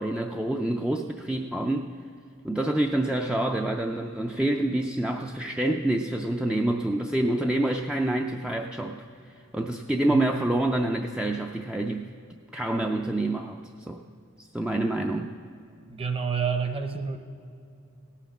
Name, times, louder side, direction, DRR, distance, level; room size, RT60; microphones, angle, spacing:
voice 1, 0.0-1.9 2.4-9.0 9.3-12.1 12.5-14.0 14.4-15.3, right 1 dB, 5° right, 2 dB, 0.3 m, -27 dB
voice 2, 15.9-17.2, right 6 dB, 25° right, 7 dB, 0.7 m, -29 dB
17.0 x 5.8 x 7.1 m, 2.6 s
head